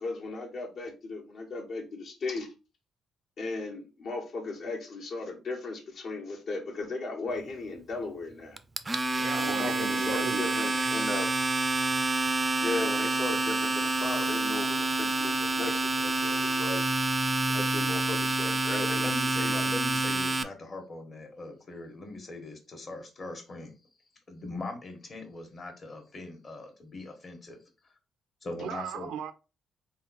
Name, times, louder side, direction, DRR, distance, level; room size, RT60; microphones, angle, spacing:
voice 1, 0.0-2.5 3.4-8.6 9.3-11.3 12.5-16.8 17.5-19.1 19.5-19.7, left 3 dB, 60° left, 1.3 m, -36 dB
Domestic sounds home sounds, 8.6-20.4, right 2 dB, 25° right, 0.4 m, -28 dB
voice 2, 9.1-10.9 28.6-29.3, right 8 dB, 85° right, 0.4 m, -37 dB
voice 3, 18.9-23.8 24.3-27.9 28.4-29.1, left 2 dB, 40° left, 1.2 m, -41 dB
3.7 x 2.3 x 4.0 m
cardioid pair, 90°, 0 cm